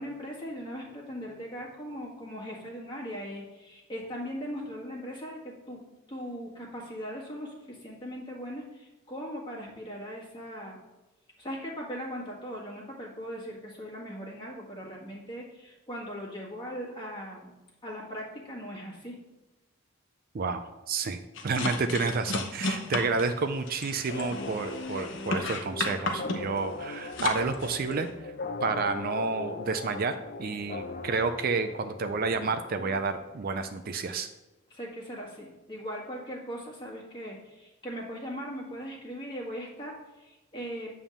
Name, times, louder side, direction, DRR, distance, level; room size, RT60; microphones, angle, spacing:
voice 1, 0.0-5.8 6.1-10.8 11.4-17.5 17.8-19.2 22.5-22.7 34.7-40.9, equal, 20° left, -3 dB, 1.8 m, -39 dB
voice 2, 20.3-28.3 28.6-34.3, right 4 dB, 45° right, 8 dB, 0.4 m, -30 dB
sound 1, 21.3-28.1, left 3 dB, 55° left, 0.9 m, -34 dB
sound 2, 24.1-33.5, left 2 dB, 40° left, 0.6 m, -39 dB
9.3 x 3.6 x 7.0 m, 1.1 s
head